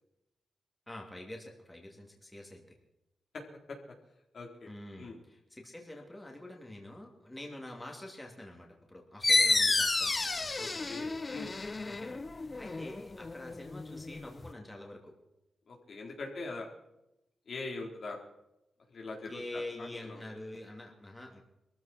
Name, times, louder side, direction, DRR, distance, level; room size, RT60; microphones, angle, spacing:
voice 1, 0.9-2.6 4.7-10.9 11.9-15.1 19.3-21.4, left 1 dB, 15° left, 0 dB, 3.1 m, -46 dB
voice 2, 4.3-4.7 5.0-5.2 10.6-11.5 15.7-16.7 17.5-18.2 18.9-20.2, left 3 dB, 60° left, 0 dB, 4.1 m, -42 dB
sound 1, 9.2-14.5, left 3 dB, 30° left, 0.6 m, -31 dB
22.0 x 14.5 x 4.5 m, 0.89 s
cardioid pair, 90°, 0 cm